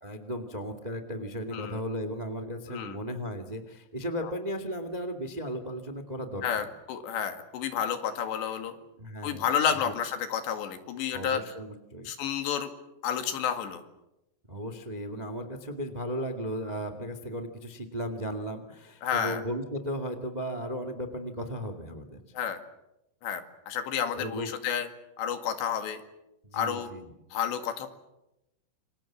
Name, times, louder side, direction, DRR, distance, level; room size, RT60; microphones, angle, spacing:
voice 1, 0.0-6.7 9.0-9.5 9.7-9.9 11.1-12.1 14.5-22.2 24.1-24.5 26.4-27.1, equal, 30° right, 8 dB, 0.7 m, -36 dB
voice 2, 6.4-8.8 9.2-11.4 12.1-12.7 13.0-13.8 19.0-19.4 22.3-22.6 23.2-24.9 25.2-26.0 26.5-26.9 27.3-27.9, left 8 dB, 90° left, 7 dB, 4.4 m, -30 dB
28.0 x 25.5 x 7.3 m, 0.90 s
omnidirectional pair, 4.9 m